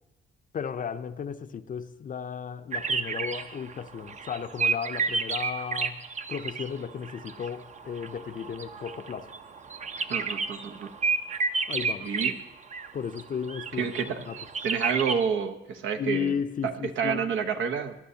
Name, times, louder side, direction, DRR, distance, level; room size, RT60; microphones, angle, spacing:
voice 1, 0.5-9.3 11.7-12.1 12.9-13.9 14.3-14.4 16.0-17.3, left 7 dB, 40° left, 0.6 m, -34 dB
sound 1, 2.7-6.8 7.0-12.4 12.7-13.2 13.5-15.3, right 5 dB, 35° right, 0.7 m, -31 dB
voice 2, 10.1-10.9 12.0-12.3 13.8-14.2 14.6-16.3 16.6-18.0, right 7 dB, 75° right, 1.0 m, -29 dB
18.0 x 11.5 x 2.8 m
cardioid pair, 90°, 20 cm